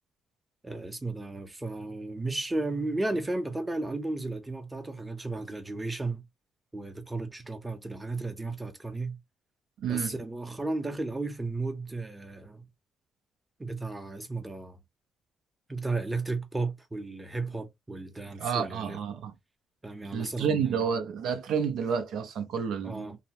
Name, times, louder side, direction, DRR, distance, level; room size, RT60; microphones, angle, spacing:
voice 1, 0.6-6.3 6.7-9.2 9.8-12.7 13.6-14.8 15.7-19.0 19.8-20.9 22.8-23.2, right 2 dB, 15° right, 0.7 m, -34 dB
voice 2, 9.8-10.1 18.4-19.3 20.1-23.2, right 7 dB, 80° right, 0.5 m, -30 dB
2.8 x 2.0 x 2.9 m
cardioid pair, 90°, 0 cm